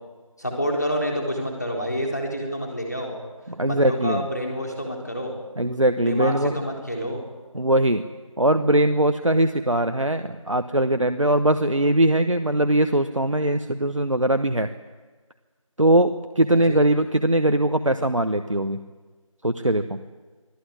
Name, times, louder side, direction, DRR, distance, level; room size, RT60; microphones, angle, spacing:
voice 1, 0.4-3.2 3.6-5.3 6.1-7.2 16.5-16.8, equal, 30° left, 1 dB, 3.9 m, -28 dB
voice 2, 3.5-4.3 5.6-6.6 7.5-8.0 8.4-14.7 15.8-18.8 19.4-20.0, right 1 dB, 65° right, 9 dB, 1.1 m, -21 dB
24.5 x 15.0 x 10.0 m, 1.4 s
figure-of-eight pair, 180°, 18 cm